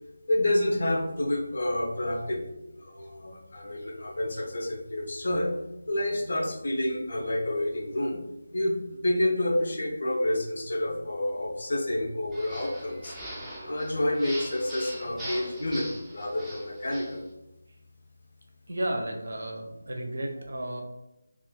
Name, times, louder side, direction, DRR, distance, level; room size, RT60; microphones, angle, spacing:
voice 1, 0.3-2.4 2.8-5.5 5.9-8.2 8.5-13.2 13.6-17.2, left 1 dB, 50° left, 2 dB, 0.6 m, -29 dB
voice 2, 2.1-2.5 6.3-6.4 10.9-11.0 18.7-20.8, right 1 dB, 55° right, 2 dB, 0.6 m, -34 dB
sound 1, 12.3-17.2, right 1 dB, 5° right, 0.5 m, -41 dB
2.4 x 2.4 x 3.6 m, 0.93 s
figure-of-eight pair, 160°, 0 cm